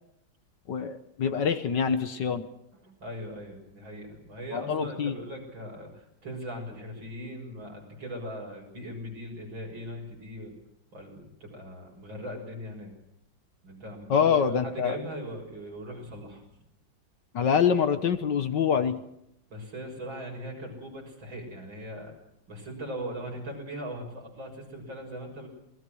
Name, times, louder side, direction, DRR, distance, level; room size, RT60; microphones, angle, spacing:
voice 1, 0.7-2.5 4.5-5.1 14.1-15.0 17.3-19.0, left 7 dB, 65° left, 10 dB, 1.8 m, -25 dB
voice 2, 2.7-10.5 10.9-12.9 13.6-16.4 19.5-22.1 22.5-25.5, equal, 75° right, 1 dB, 7.2 m, -39 dB
27.5 x 20.0 x 6.4 m, 0.77 s
omnidirectional pair, 2.1 m